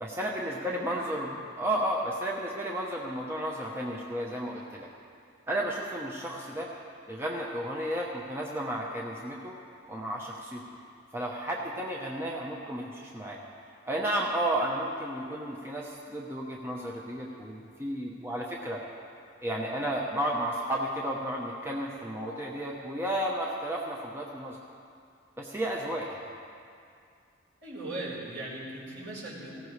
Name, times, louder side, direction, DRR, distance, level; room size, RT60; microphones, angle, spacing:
voice 1, 0.0-4.9 5.5-6.7 7.1-9.5 9.9-10.6 11.1-13.4 13.9-18.8 19.4-24.6 25.4-26.3, right 1 dB, 10° right, -2 dB, 0.9 m, -33 dB
voice 2, 27.6-29.6, right 1 dB, 65° right, -6 dB, 4.4 m, -39 dB
18.0 x 16.0 x 3.2 m, 2.4 s
head